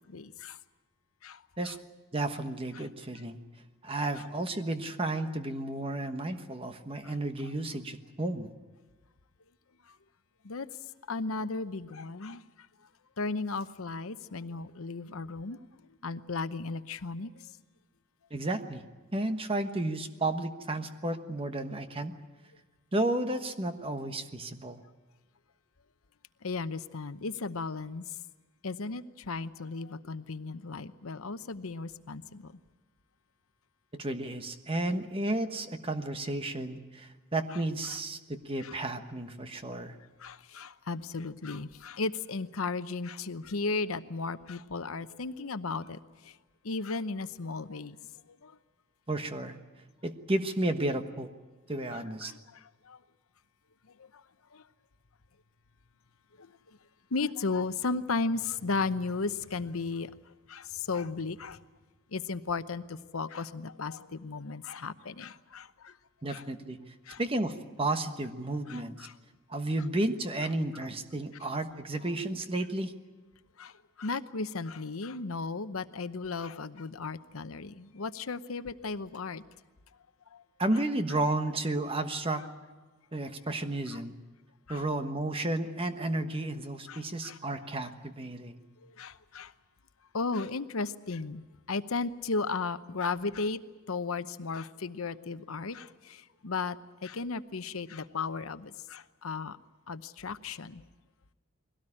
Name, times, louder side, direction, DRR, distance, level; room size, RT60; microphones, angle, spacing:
voice 1, 0.1-0.6 1.2-1.7 2.8-2.9 4.2-4.3 7.0-7.1 9.9-10.0 10.4-10.7 11.1-12.7 13.2-15.6 16.0-17.5 26.4-28.1 28.6-32.6 37.9-38.0 38.6-38.8 40.2-46.4 46.6-48.0 48.3-48.6 51.9-53.0 54.0-54.2 54.5-54.6 56.4-56.8 57.1-60.1 60.5-61.6 62.1-66.0 66.3-66.4 67.1-67.2 68.7-69.2 71.4-71.5 73.6-79.4 80.3-80.4 83.9-84.0 84.7-84.8 86.9-87.4 88.8-89.5 90.1-93.6 93.9-99.6 99.9-100.8, left 4 dB, 75° left, 12 dB, 0.8 m, -35 dB
voice 2, 2.1-3.4 3.8-8.5 18.3-18.8 19.1-22.1 22.9-24.8 33.9-40.0 49.1-49.6 50.0-51.3 51.7-52.3 66.2-66.8 67.2-69.1 69.5-72.9 80.6-82.4 83.1-84.2 84.7-88.6, right 2 dB, 25° right, 8 dB, 1.3 m, -32 dB
22.0 x 17.5 x 10.0 m, 1.2 s
head